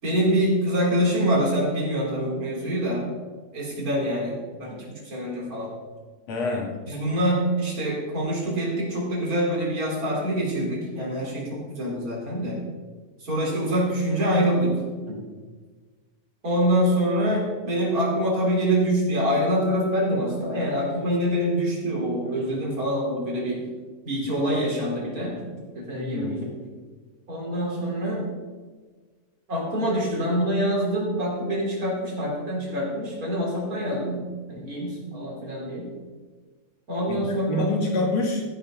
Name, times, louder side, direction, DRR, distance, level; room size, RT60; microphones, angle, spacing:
voice 1, 0.0-3.1 3.5-5.7 6.9-12.6 13.2-14.8 15.1-15.2 16.4-23.7 24.0-25.4 25.7-26.5 27.3-28.3 29.5-34.2 34.5-35.9 36.9-37.6, equal, 30° right, -4 dB, 4.2 m, -25 dB
voice 2, 6.3-6.7 25.9-26.3 37.1-38.4, left 2 dB, 60° left, -1 dB, 3.5 m, -26 dB
15.0 x 10.5 x 3.9 m, 1.4 s
omnidirectional pair, 3.4 m